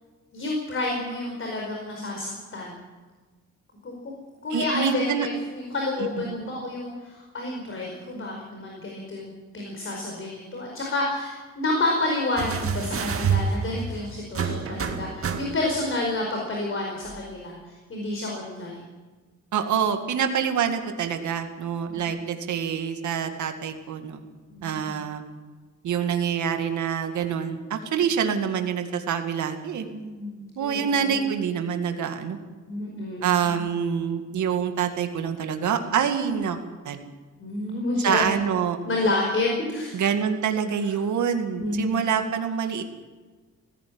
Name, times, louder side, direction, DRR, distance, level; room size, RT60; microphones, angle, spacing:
voice 1, 0.3-2.8 3.8-4.1 4.4-18.8 21.9-22.0 24.5-24.9 29.9-31.3 32.7-33.5 37.4-38.3 38.8-40.0 41.6-42.1, left 2 dB, 45° left, 0 dB, 5.0 m, -29 dB
voice 2, 4.5-5.3 6.3-6.4 19.5-24.2 24.6-25.2 25.8-29.9 30.6-32.4 33.2-36.6 36.8-37.0 38.0-38.8 39.9-42.8, right 7 dB, 85° right, 6 dB, 2.2 m, -26 dB
sound 1, 12.4-15.9 17.1-17.2, right 5 dB, 50° right, 2.1 m, -28 dB
18.5 x 16.0 x 8.7 m, 1.4 s
cardioid pair, 120°, 29 cm